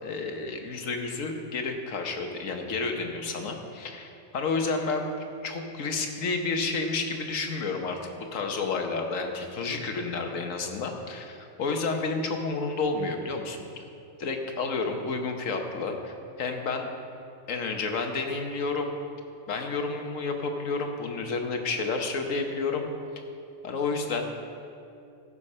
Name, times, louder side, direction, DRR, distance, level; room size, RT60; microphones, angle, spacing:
voice 1, 0.0-5.1 5.4-13.6 14.2-16.9 17.5-18.9 19.5-22.9 23.6-24.3, left 4 dB, 85° left, 4 dB, 1.5 m, -30 dB
15.0 x 7.0 x 5.5 m, 2.6 s
omnidirectional pair, 1.3 m